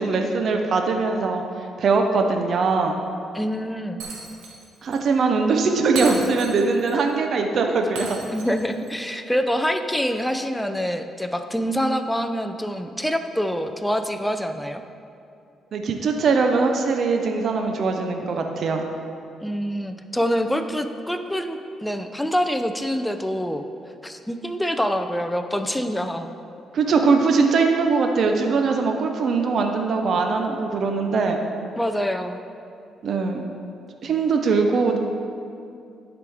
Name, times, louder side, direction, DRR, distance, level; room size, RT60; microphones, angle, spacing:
voice 1, 0.0-1.4 1.8-2.9 4.8-8.2 15.7-18.8 26.7-31.4 33.0-33.4 34.0-35.0, right 4 dB, 60° right, 4 dB, 0.7 m, -21 dB
voice 2, 3.3-4.0 8.3-14.8 19.4-23.6 24.0-26.3 31.8-32.4, equal, 5° left, 7 dB, 0.5 m, -26 dB
Shatter, 4.0-4.7 4.9-5.0 5.9-6.9 7.9-8.9, right 3 dB, 85° right, 1.2 m, -35 dB
12.0 x 4.9 x 3.5 m, 2.6 s
cardioid pair, 90°, 0 cm